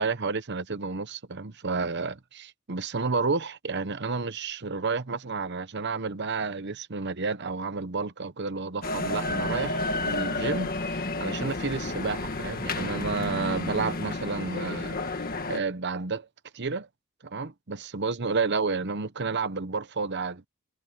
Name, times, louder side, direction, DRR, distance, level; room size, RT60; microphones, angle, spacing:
voice 1, 0.0-16.3 16.5-16.9 17.2-20.5, right 4 dB, 50° right, 1.0 m, -31 dB
sound 1, 8.8-15.6, left 2 dB, 40° left, 1.8 m, -31 dB
head